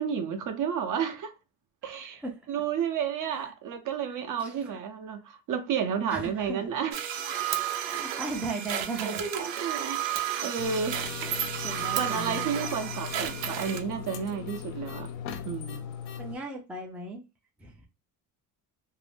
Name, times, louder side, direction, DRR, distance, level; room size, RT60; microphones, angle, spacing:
voice 1, 0.0-1.3 1.8-2.2 2.5-7.0 9.0-11.0 12.0-15.1 15.4-15.9, right 7 dB, 45° right, 0.6 m, -31 dB
voice 2, 4.4-4.8 6.1-6.6 7.8-9.2 11.2-12.6 15.3-15.4 16.2-17.2 17.6-17.9, right 3 dB, 5° right, 0.4 m, -37 dB
sound 1, 6.9-13.8, right 10 dB, 85° right, 0.6 m, -32 dB
sound 2, 10.6-16.4, left 8 dB, 85° left, 0.6 m, -39 dB
2.6 x 2.0 x 3.2 m
cardioid pair, 110°, 43 cm